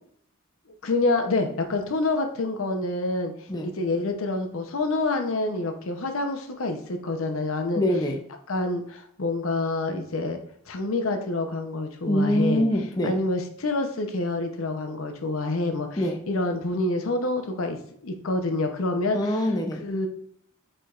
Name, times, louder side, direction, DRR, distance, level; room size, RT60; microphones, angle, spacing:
voice 1, 0.8-3.3 3.6-7.8 8.5-10.4 10.7-12.6 13.0-19.4 19.8-20.1, left 2 dB, 75° left, 5 dB, 0.7 m, -27 dB
voice 2, 7.8-8.2 12.1-13.1 16.0-16.2 19.1-19.8, equal, 20° left, 3 dB, 0.5 m, -24 dB
5.0 x 4.5 x 2.4 m, 0.65 s
head